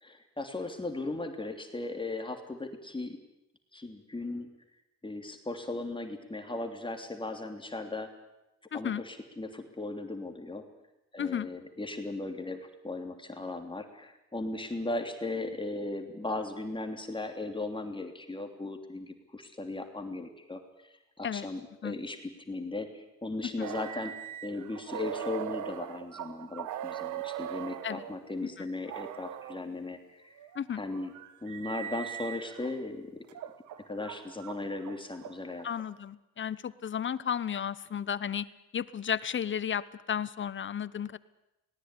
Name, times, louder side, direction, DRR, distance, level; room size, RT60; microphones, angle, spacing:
voice 1, 0.0-3.2 3.7-4.5 5.0-8.1 8.7-10.7 11.1-24.2 24.4-30.4 30.8-31.1 31.4-33.2 33.9-35.7, left 2 dB, 15° left, 5 dB, 3.2 m, -37 dB
voice 2, 8.7-9.0 11.2-11.5 21.2-21.5 21.8-22.0 27.8-28.0 30.5-30.8 35.6-38.5 38.7-41.2, left 8 dB, 40° left, 17 dB, 1.0 m, -33 dB
sound 1, 23.6-28.2 28.8-29.6 30.4-32.7 33.3-35.7, right 11 dB, 70° right, 1.4 m, -40 dB
19.0 x 19.0 x 9.8 m, 0.92 s
supercardioid pair, 80°, 31 cm